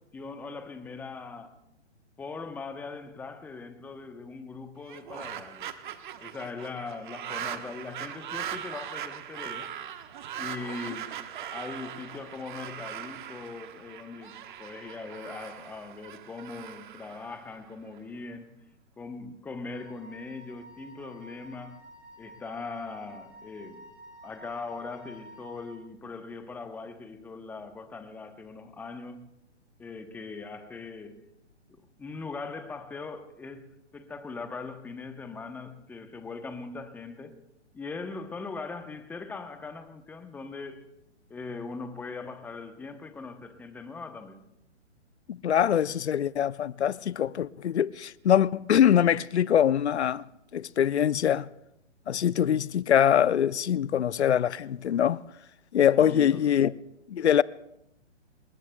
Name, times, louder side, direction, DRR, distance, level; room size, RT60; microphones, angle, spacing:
voice 1, 0.0-1.6 2.2-5.7 6.2-9.7 10.4-11.2 11.5-18.5 19.0-21.8 22.2-23.9 24.2-29.3 29.8-31.2 32.0-37.4 37.7-40.9 41.3-44.4 56.0-56.7, left 4 dB, 5° left, 0.8 m, -40 dB
sound 1, 4.8-18.0, right 10 dB, 45° right, 1.1 m, -40 dB
Wind instrument woodwind instrument, 19.7-25.8, right 1 dB, 85° right, 6.8 m, -51 dB
voice 2, 45.3-50.2 50.5-51.5 52.1-55.2 55.7-56.7 57.1-57.4, left 9 dB, 65° left, 0.6 m, -23 dB
26.5 x 21.5 x 2.3 m
figure-of-eight pair, 135°, 36 cm